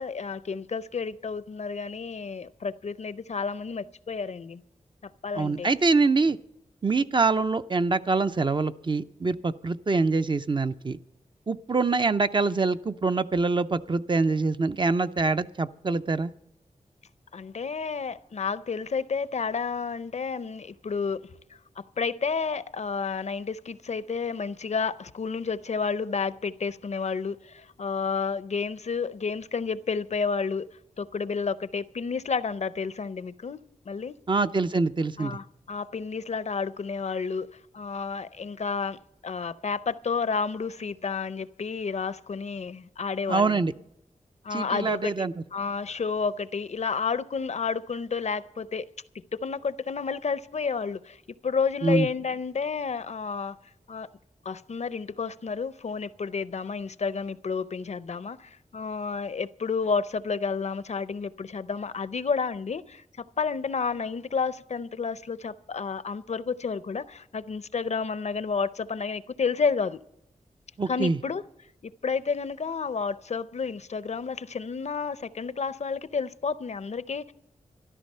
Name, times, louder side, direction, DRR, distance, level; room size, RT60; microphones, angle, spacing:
voice 1, 0.0-4.6 5.0-5.7 17.3-30.7 31.0-33.6 33.9-34.1 35.2-37.5 37.7-43.6 44.4-48.9 49.3-53.6 53.9-54.1 54.4-63.0 63.4-70.0 70.9-71.4 71.8-77.3, left 5 dB, 60° left, 0.5 m, -31 dB
voice 2, 5.4-6.4 6.8-11.0 11.5-16.3 34.3-35.4 43.3-43.7 44.5-45.3 51.8-52.1 70.8-71.2, right 3 dB, 35° right, 0.5 m, -25 dB
13.5 x 12.0 x 5.5 m
wide cardioid pair, 85°, 13 cm